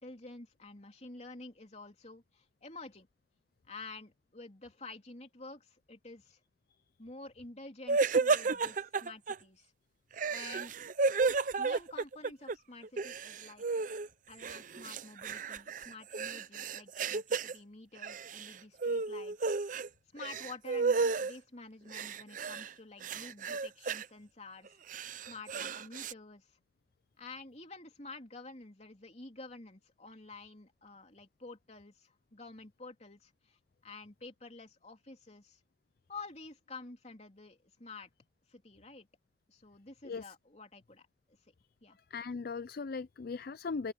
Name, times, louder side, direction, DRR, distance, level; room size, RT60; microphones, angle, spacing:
voice 1, 0.0-3.1 3.7-6.4 7.0-9.7 10.3-10.8 11.6-13.6 14.3-19.4 19.6-19.8 20.1-24.8 25.2-26.6 27.2-35.6 36.1-38.1 38.5-39.1 39.5-41.5 41.8-42.0, left 3 dB, 40° left, 3.3 m, -50 dB
sound 1, 7.9-9.3 10.1-12.5 12.8-14.1 14.4-17.5 18.0-18.5 18.8-19.9 20.2-21.3 21.9-22.7 23.0-24.0 24.7-26.1, right 4 dB, 50° right, 0.6 m, -32 dB
voice 2, 42.1-43.9, left 4 dB, 55° left, 0.4 m, -38 dB
open air
head